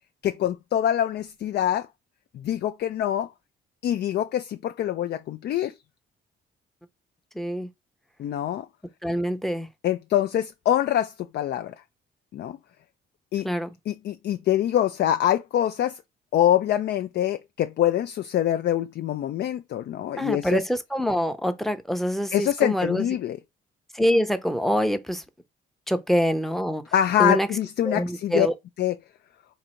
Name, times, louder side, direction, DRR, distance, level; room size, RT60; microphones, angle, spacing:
voice 1, 0.2-1.9 2.3-3.3 3.8-5.7 8.2-8.7 9.8-11.7 12.3-12.6 13.3-13.5 13.9-15.9 16.3-20.6 22.3-23.4 26.9-28.5 28.8-28.9, left 11 dB, 55° left, 0.4 m, -24 dB
voice 2, 7.3-7.7 9.0-9.7 13.4-13.7 20.2-23.1 23.9-25.2 25.9-26.8 27.2-27.5 27.8-28.5, equal, ahead, 0.6 m, -25 dB
3.9 x 2.7 x 4.3 m
cardioid pair, 90°, 20 cm